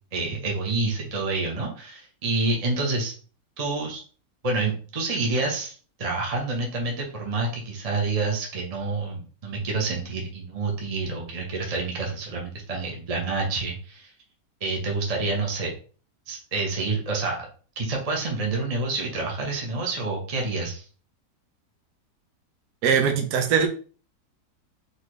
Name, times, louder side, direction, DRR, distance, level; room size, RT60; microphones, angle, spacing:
voice 1, 0.1-3.1 3.6-4.0 4.4-14.1 14.6-15.7 16.3-17.4 17.8-20.8, right 3 dB, 25° right, 0 dB, 0.9 m, -28 dB
voice 2, 22.8-23.7, right 7 dB, 70° right, 5 dB, 1.3 m, -21 dB
4.3 x 3.6 x 3.1 m, 0.39 s
omnidirectional pair, 1.8 m